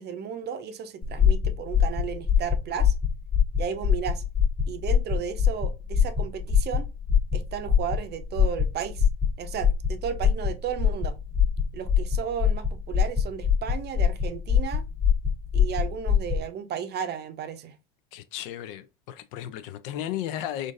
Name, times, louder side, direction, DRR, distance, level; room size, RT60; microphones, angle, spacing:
voice 1, 0.0-2.9 3.6-4.2 4.7-6.9 7.3-9.1 9.4-11.2 11.7-14.8 15.5-17.7, right 8 dB, 35° right, 0.6 m, -34 dB
sound 1, 1.0-16.4, left 7 dB, 30° left, 1.0 m, -24 dB
voice 2, 18.1-20.7, left 11 dB, 65° left, 0.5 m, -34 dB
3.7 x 2.6 x 2.5 m
hypercardioid pair, 95°, 29 cm